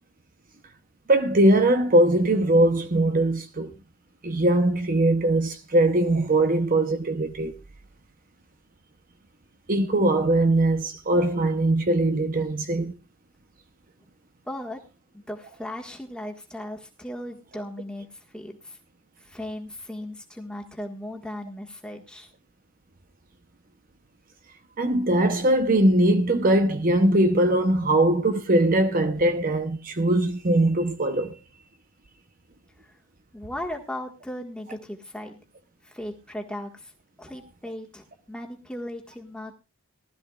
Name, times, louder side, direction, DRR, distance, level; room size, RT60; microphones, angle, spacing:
voice 1, 1.1-3.7 4.2-7.5 9.7-13.0 24.8-31.4, right 1 dB, 40° right, 0.8 m, -21 dB
voice 2, 14.4-14.8 15.1-18.1 18.3-18.8 19.2-22.3 32.8-33.0 33.3-35.4 35.8-36.9 37.2-39.5, left 1 dB, 5° left, 1.6 m, -37 dB
19.0 x 13.0 x 2.4 m
head